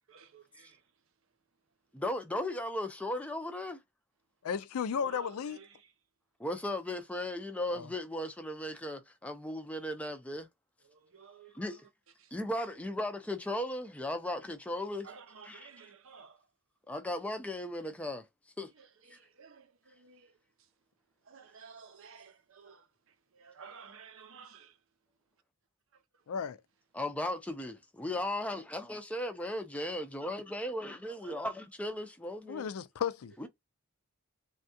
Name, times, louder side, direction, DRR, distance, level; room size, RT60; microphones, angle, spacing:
voice 1, 0.1-1.1 5.0-5.9 10.8-11.8 12.2-12.3 15.0-16.5 18.7-20.7 21.2-24.8 25.9-26.3 31.2-31.3, right 6 dB, 65° right, 0.6 m, -54 dB
voice 2, 1.9-3.8 6.4-10.5 11.5-11.8 12.3-15.1 15.5-15.7 16.9-18.3 18.6-18.7 19.1-19.2 26.9-32.7 33.4-33.5, left 1 dB, 5° left, 0.4 m, -36 dB
voice 3, 4.4-5.6 7.7-7.9 26.3-26.6 32.5-33.3, left 7 dB, 75° left, 0.4 m, -34 dB
3.4 x 2.3 x 2.6 m
head